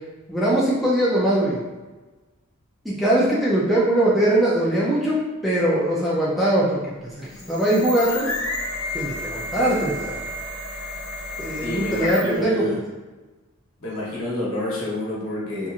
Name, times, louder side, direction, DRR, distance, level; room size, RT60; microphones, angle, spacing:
voice 1, 0.3-1.6 2.8-5.2 5.4-8.3 8.9-10.2 11.4-12.8, right 1 dB, ahead, -7 dB, 0.4 m, -21 dB
sound 1, 7.2-12.5, left 2 dB, 85° left, 0.5 m, -31 dB
voice 2, 11.6-12.8 13.8-15.7, left 1 dB, 60° left, -6 dB, 0.9 m, -28 dB
2.8 x 2.4 x 2.4 m, 1.2 s
head